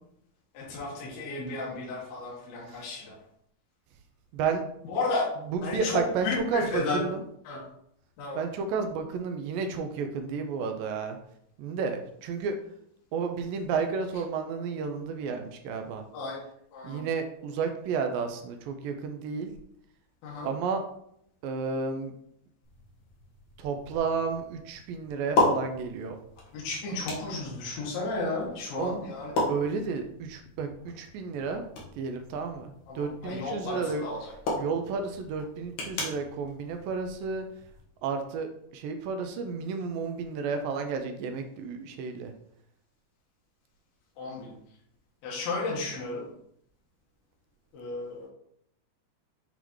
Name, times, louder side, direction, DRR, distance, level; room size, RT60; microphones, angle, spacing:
voice 1, 0.5-3.1 4.9-5.2 5.6-7.0 7.4-7.6 8.2-8.4 16.1-16.4 16.7-17.0 20.2-20.5 26.5-29.3 32.9-34.3 44.2-44.5 45.2-46.3 47.7-48.3, left 3 dB, 75° left, -5 dB, 3.1 m, -33 dB
voice 2, 5.5-7.2 8.4-11.2 11.6-12.5 13.1-16.0 16.8-19.5 20.4-20.8 21.4-22.1 23.6-26.2 28.8-29.0 29.5-31.6 32.0-34.1 34.6-37.5 38.0-42.3, right 5 dB, 80° right, 6 dB, 2.1 m, -32 dB
sound 1, 22.6-37.8, left 2 dB, 60° left, 2.5 m, -36 dB
8.1 x 3.9 x 3.1 m, 0.71 s
omnidirectional pair, 4.4 m